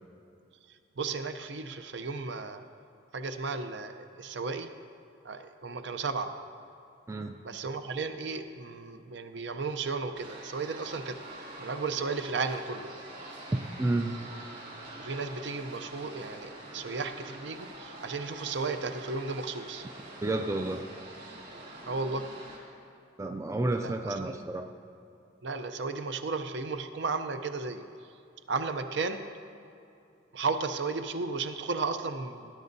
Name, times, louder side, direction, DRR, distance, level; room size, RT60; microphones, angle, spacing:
voice 1, 0.7-2.6 3.1-4.7 5.2-6.3 7.4-11.2 11.6-12.9 15.0-19.9 21.9-22.3 23.8-24.3 25.4-27.8 28.5-29.2 30.3-32.5, right 4 dB, 65° right, 8 dB, 0.6 m, -34 dB
sound 1, 10.2-22.6, right 1 dB, 45° right, 2.6 m, -45 dB
voice 2, 13.5-14.2 20.2-20.8 23.2-24.7, right 2 dB, 15° right, 5 dB, 0.3 m, -30 dB
18.0 x 10.0 x 2.7 m, 2.6 s
head